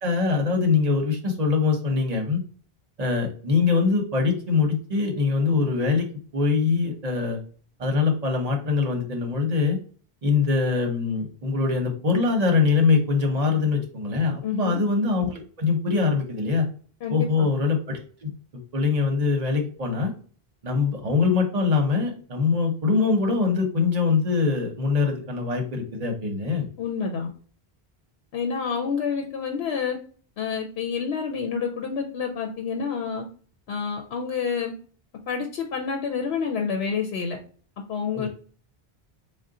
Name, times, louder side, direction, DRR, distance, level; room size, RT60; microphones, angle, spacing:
voice 1, 0.0-2.4 3.0-6.1 6.3-7.4 7.8-9.8 10.2-16.7 17.1-18.3 18.7-20.1 20.6-26.7, left 4 dB, 45° right, 2 dB, 0.8 m, -23 dB
voice 2, 14.4-14.8 17.0-17.5 26.8-27.3 28.3-30.0 30.4-33.3 33.7-34.7 35.3-37.4 37.9-38.3, left 6 dB, 85° left, 3 dB, 0.8 m, -28 dB
3.7 x 2.1 x 3.6 m, 0.43 s
omnidirectional pair, 1.0 m